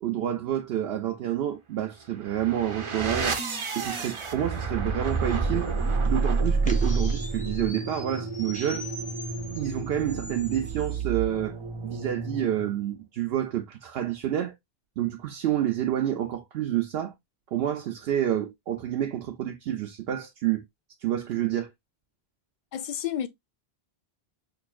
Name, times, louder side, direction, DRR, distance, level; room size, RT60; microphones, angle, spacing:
voice 1, 0.0-3.4 3.8-5.7 6.1-8.9 9.6-11.6 11.8-14.5 15.0-17.1 17.5-20.6 21.0-21.7, right 11 dB, 85° right, 0.8 m, -28 dB
sound 1, 2.1-12.8, right 4 dB, 35° right, 0.6 m, -30 dB
sound 2, 5.0-11.0, left 1 dB, 10° left, 0.7 m, -43 dB
voice 2, 22.7-23.3, left 10 dB, 60° left, 0.6 m, -30 dB
5.5 x 2.6 x 2.3 m
omnidirectional pair, 1.0 m